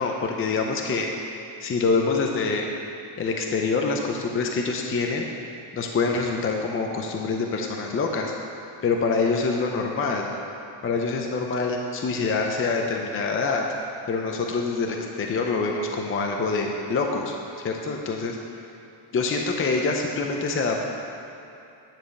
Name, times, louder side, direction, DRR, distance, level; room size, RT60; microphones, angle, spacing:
voice 1, 0.0-2.7 3.2-5.3 5.7-8.3 8.8-10.3 10.8-13.6 14.1-17.3 17.6-18.4 19.1-20.8, left 4 dB, 25° left, 2 dB, 0.6 m, -25 dB
10.5 x 4.9 x 6.9 m, 2.8 s
cardioid pair, 150°, 49 cm